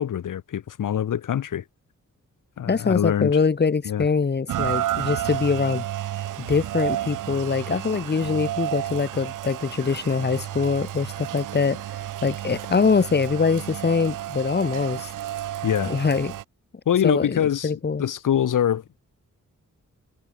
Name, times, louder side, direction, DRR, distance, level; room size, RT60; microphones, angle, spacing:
voice 1, 0.0-1.6 2.6-3.3 3.8-4.1 15.6-15.9 16.9-17.7 18.0-19.0, left 10 dB, 90° left, 1.1 m, -24 dB
voice 2, 2.7-5.8 6.4-11.8 12.2-15.1 15.9-16.3 17.0-18.1, left 5 dB, 35° left, 1.2 m, -23 dB
Rain, 4.5-16.4, right 13 dB, 80° right, 0.5 m, -31 dB
wide cardioid pair, 115°, 31 cm